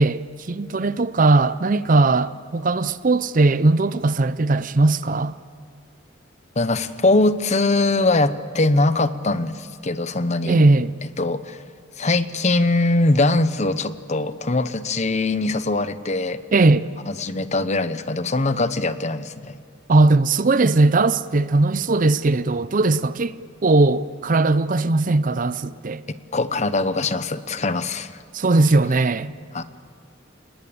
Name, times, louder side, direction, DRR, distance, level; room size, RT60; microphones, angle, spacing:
voice 1, 0.0-5.3 10.5-10.9 16.5-16.9 19.9-26.0 28.3-29.3, right 2 dB, 45° right, 0.6 m, -19 dB
voice 2, 6.6-10.6 11.0-11.6 12.0-16.4 17.1-19.6 26.3-28.1 29.5-29.6, left 2 dB, 35° left, 0.9 m, -22 dB
28.0 x 20.0 x 8.7 m
head